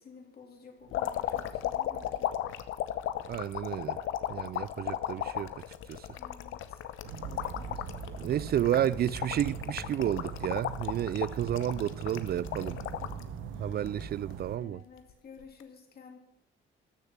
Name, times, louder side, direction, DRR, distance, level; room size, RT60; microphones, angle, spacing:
voice 1, 0.0-2.3 6.2-6.8 7.2-7.8 13.2-13.3 14.6-16.2, left 5 dB, 50° left, 3.3 m, -51 dB
sound 1, 0.9-13.2 13.7-14.5 15.4-15.6, left 12 dB, 85° left, 0.9 m, -35 dB
voice 2, 3.3-4.0 4.3-5.5 5.9-6.2 8.2-12.8 13.6-14.8, right 11 dB, 50° right, 0.4 m, -31 dB
sound 2, 7.0-14.6, right 7 dB, 80° right, 1.1 m, -41 dB
14.0 x 6.8 x 7.3 m
cardioid pair, 90°, 20 cm